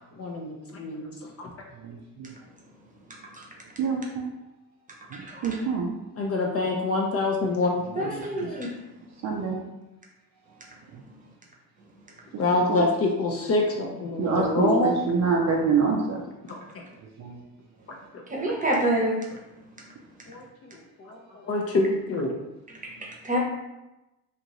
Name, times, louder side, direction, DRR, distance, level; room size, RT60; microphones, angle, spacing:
voice 1, 0.2-1.1 1.4-1.5 6.2-8.5 12.4-15.0 16.5-16.8 18.1-18.2 20.3-20.4 20.7-22.4, left 2 dB, 35° left, 0 dB, 0.5 m, -26 dB
voice 2, 1.8-2.3 3.8-4.3 5.1-6.0 8.0-8.5 9.2-9.6 10.9-11.0 12.3-12.4 12.7-12.9 14.2-16.2 17.0-17.4, right 5 dB, 40° right, 0 dB, 0.5 m, -26 dB
voice 3, 7.9-8.7 18.3-19.2 23.2-23.4, right 1 dB, 15° right, -2 dB, 0.8 m, -26 dB
2.6 x 2.4 x 3.0 m, 0.98 s
hypercardioid pair, 70°, 46 cm